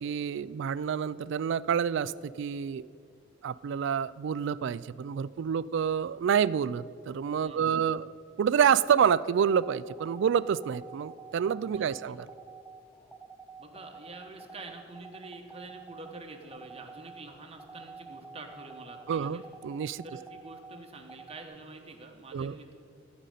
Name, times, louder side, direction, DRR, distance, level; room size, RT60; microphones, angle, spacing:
voice 1, 0.0-2.9 3.4-8.1 8.4-12.2 19.1-20.0 22.3-22.5, right 7 dB, 65° right, 18 dB, 0.3 m, -28 dB
voice 2, 7.4-8.0 11.7-12.1 13.6-19.4 20.0-22.7, right 3 dB, 30° right, 3 dB, 1.3 m, -47 dB
sound 1, 9.5-21.4, right 4 dB, ahead, 0.5 m, -48 dB
14.0 x 5.3 x 9.1 m, 2.4 s
head